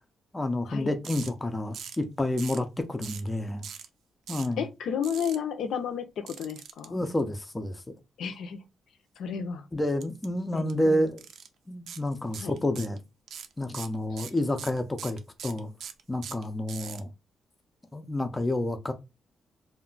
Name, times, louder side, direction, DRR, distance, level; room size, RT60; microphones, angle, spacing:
voice 1, 0.3-3.7 4.3-4.6 6.9-7.8 9.7-11.2 11.7-13.0 13.6-15.7 16.1-17.1 17.9-18.9, left 1 dB, 15° left, 0.4 m, -29 dB
sound 1, 1.0-1.3 1.7-2.0 2.4-2.6 3.0-3.3 3.6-3.9 4.3-4.5 5.0-5.4 6.3-6.9 10.0-10.3 10.6-10.7 11.2-11.5 11.9-12.0 12.3-13.0 13.3-17.0, right 7 dB, 70° right, 0.5 m, -41 dB
voice 2, 4.6-7.0 8.2-8.6 9.2-9.6 10.5-11.0 12.4-12.5 14.1-14.2, left 7 dB, 70° left, 0.5 m, -32 dB
2.3 x 2.1 x 3.8 m
wide cardioid pair, 155°, 0 cm